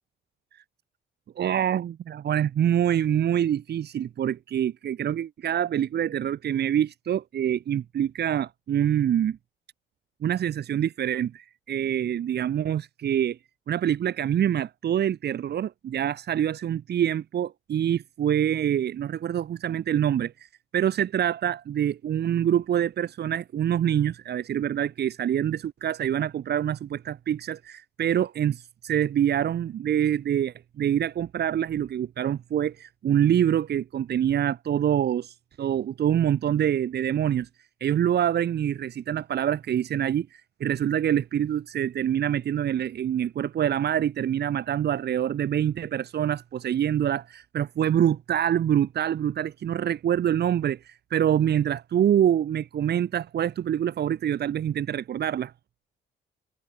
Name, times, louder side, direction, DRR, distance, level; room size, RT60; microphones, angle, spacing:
voice 1, 1.4-9.4 10.2-13.4 13.7-37.5 37.8-55.5, right 10 dB, 55° right, 1.0 m, -25 dB
cardioid pair, 90°, 20 cm